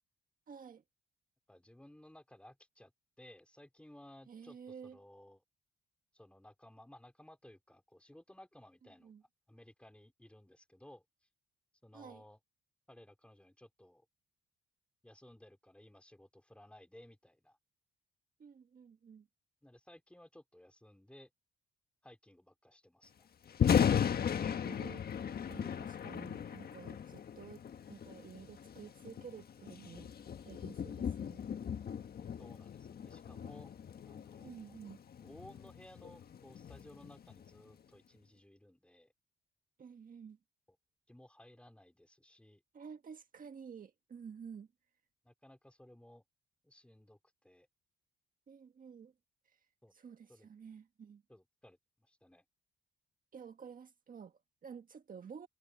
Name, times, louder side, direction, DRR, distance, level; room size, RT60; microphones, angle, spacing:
voice 1, 0.5-0.8 4.3-5.0 9.0-9.2 11.9-12.2 18.4-19.3 24.0-25.0 25.4-27.6 27.9-31.5 34.4-35.0 39.8-40.4 42.7-44.7 48.5-49.1 49.4-49.6 49.9-51.2 53.3-55.5, right 7 dB, 45° right, 1.6 m, -51 dB
voice 2, 1.5-2.9 3.2-4.6 4.8-5.4 6.1-9.1 9.5-11.0 11.8-12.4 12.9-14.0 15.0-17.6 19.6-21.3 22.0-23.3 32.4-33.7 34.0-34.7 35.2-39.1 41.1-42.6 45.2-46.2 46.6-47.7 49.8-50.0 50.3-50.5 51.3-52.4, left 1 dB, 5° left, 4.7 m, -58 dB
Thunder, 23.5-37.6, left 8 dB, 50° left, 1.5 m, -37 dB
cardioid pair, 90°, 20 cm